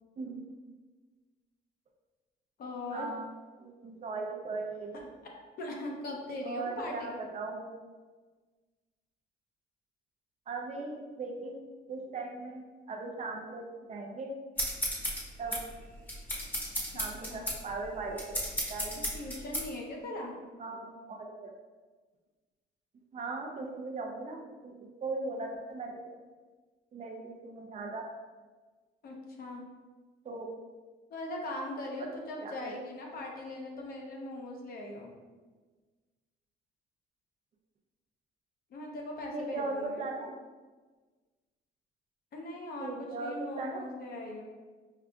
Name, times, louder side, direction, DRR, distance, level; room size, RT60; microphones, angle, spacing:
voice 1, 0.2-0.5 2.9-3.2 3.6-5.1 6.4-7.7 10.5-11.5 11.9-12.6 12.9-14.3 15.4-15.6 16.9-18.4 18.7-19.0 20.6-21.5 23.1-26.2 26.9-28.1 30.2-30.5 32.4-32.7 39.3-40.4 42.8-43.9, right 3 dB, 40° right, 1 dB, 0.5 m, -38 dB
voice 2, 2.6-3.1 4.9-5.0 5.6-7.1 16.9-17.0 17.3-17.5 18.9-20.4 29.0-29.6 31.1-35.1 38.7-40.1 42.3-44.4, left 1 dB, 55° left, 0 dB, 0.8 m, -40 dB
sound 1, 14.6-19.7, equal, 10° left, 0.9 m, -34 dB
5.4 x 2.5 x 2.3 m, 1.3 s
cardioid pair, 125°, 19 cm